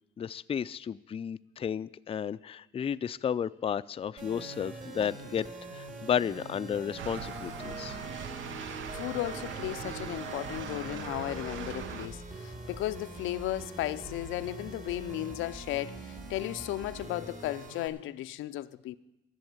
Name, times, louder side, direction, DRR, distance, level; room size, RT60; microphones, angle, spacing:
voice 1, 0.2-5.5 5.7-8.0, left 8 dB, 30° left, 0.4 m, -33 dB
sound 1, 4.2-17.9, right 2 dB, 40° right, 2.8 m, -43 dB
sound 2, 7.0-12.1, right 7 dB, 75° right, 0.9 m, -40 dB
voice 2, 8.9-19.0, left 15 dB, 90° left, 0.5 m, -35 dB
12.0 x 7.1 x 9.5 m
cardioid pair, 90°, 20 cm